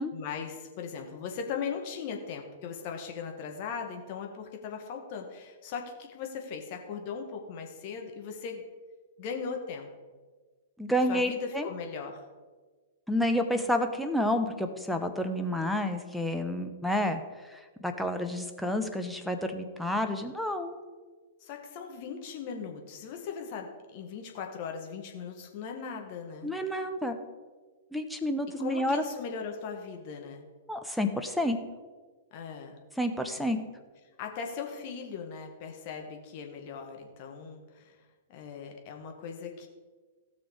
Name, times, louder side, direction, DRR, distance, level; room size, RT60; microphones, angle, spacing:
voice 1, 0.1-8.6 9.2-9.9 11.1-12.2 21.4-26.5 28.6-30.4 32.3-32.8 33.4-33.5 34.2-38.0 38.3-39.7, left 6 dB, 45° left, 3 dB, 1.8 m, -39 dB
voice 2, 10.8-11.7 13.1-17.2 17.5-20.8 26.4-27.2 27.9-29.0 30.7-31.6 33.0-33.6, left 1 dB, ahead, 4 dB, 1.0 m, -29 dB
16.0 x 6.3 x 5.0 m, 1.4 s
figure-of-eight pair, 105°, 0 cm